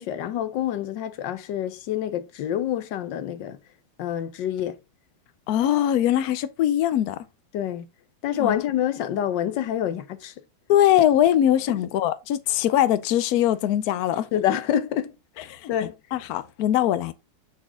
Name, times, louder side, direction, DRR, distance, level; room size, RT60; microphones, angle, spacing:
voice 1, 0.0-3.6 4.0-4.8 7.5-7.9 8.2-10.3 14.3-15.9, left 10 dB, 70° left, 1.3 m, -27 dB
voice 2, 5.5-7.2 8.4-8.5 10.7-14.3 15.5-17.1, left 11 dB, 85° left, 0.8 m, -22 dB
8.2 x 4.2 x 3.7 m
omnidirectional pair, 2.2 m